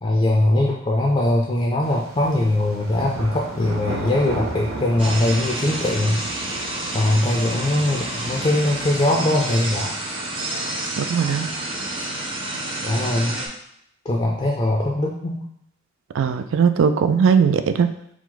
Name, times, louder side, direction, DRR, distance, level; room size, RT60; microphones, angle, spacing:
voice 1, 0.0-6.2 6.5-6.6 6.9-9.9 12.8-13.4 14.0-15.4, left 1 dB, 25° left, -1 dB, 0.5 m, -21 dB
sound 1, 1.8-9.8, right 2 dB, 90° right, 0.7 m, -35 dB
sound 2, 5.0-13.5, right 2 dB, 25° right, 0.7 m, -29 dB
voice 2, 11.0-11.5 16.2-17.9, right 6 dB, 65° right, 10 dB, 0.3 m, -19 dB
4.7 x 2.1 x 3.9 m, 0.73 s
head